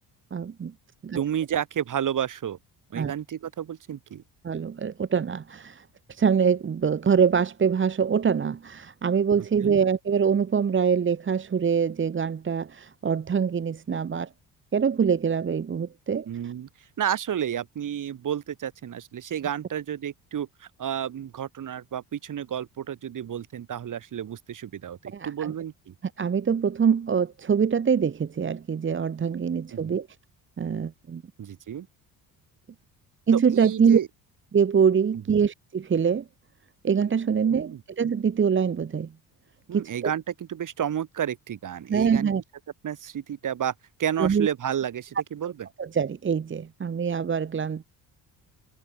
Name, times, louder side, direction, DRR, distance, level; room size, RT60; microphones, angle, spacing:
voice 1, 0.3-0.7 1.0-1.2 2.9-3.1 4.4-14.3 14.7-16.5 25.1-25.5 26.2-30.1 30.6-31.2 33.3-34.0 34.5-36.2 36.8-39.1 39.7-40.1 41.9-42.4 44.2-44.5 45.8-47.8, right 6 dB, 30° right, 1.3 m, -24 dB
voice 2, 1.2-2.6 2.9-4.2 9.6-9.8 16.3-16.7 17.0-25.9 29.7-30.0 31.4-31.9 33.3-34.1 35.1-35.4 37.4-37.8 39.7-42.3 42.8-43.7 44.0-45.7, right 9 dB, 55° right, 5.3 m, -31 dB
cardioid pair, 100°, 37 cm